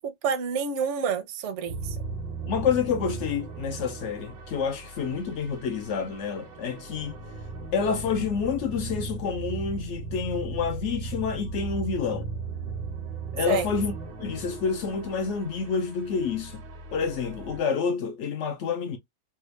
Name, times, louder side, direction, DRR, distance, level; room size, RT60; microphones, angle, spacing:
voice 1, 0.0-2.0 13.5-13.6, right 6 dB, 65° right, 0.7 m, -28 dB
sound 1, 1.7-17.6, right 4 dB, 90° right, 1.5 m, -37 dB
voice 2, 2.5-7.2 7.7-12.3 13.3-13.9 14.2-16.6 16.9-19.0, left 6 dB, 75° left, 0.6 m, -28 dB
3.4 x 2.3 x 3.1 m
omnidirectional pair, 1.9 m